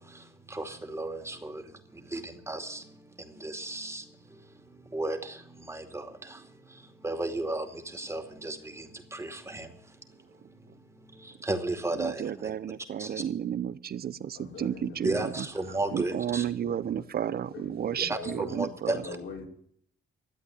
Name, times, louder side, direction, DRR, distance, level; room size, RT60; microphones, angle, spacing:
voice 1, 0.0-12.5 13.0-13.2 15.0-16.4 18.0-19.2, right 2 dB, 15° right, 5 dB, 2.5 m, -35 dB
voice 2, 11.9-15.5 15.9-18.9, right 9 dB, 50° right, 17 dB, 0.8 m, -32 dB
voice 3, 14.4-15.4 15.9-16.3 16.6-19.4, left 4 dB, 80° left, -1 dB, 5.3 m, -44 dB
13.0 x 8.2 x 9.8 m, 0.65 s
cardioid pair, 90°, 20 cm